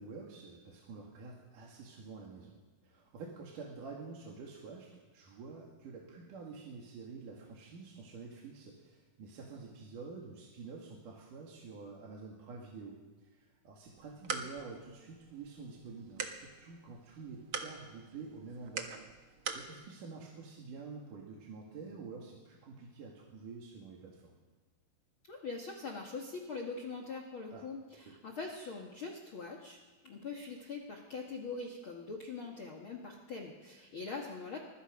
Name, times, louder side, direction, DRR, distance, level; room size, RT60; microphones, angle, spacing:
voice 1, 0.0-18.9 19.5-24.4 27.5-27.7 28.0-28.1, right 4 dB, 65° right, -2 dB, 3.7 m, -48 dB
sound 1, 13.9-19.7, right 5 dB, 50° right, 1.7 m, -44 dB
voice 2, 25.3-29.8 30.0-34.6, left 4 dB, 45° left, 0 dB, 2.1 m, -42 dB
24.0 x 20.5 x 5.3 m, 1.3 s
omnidirectional pair, 4.0 m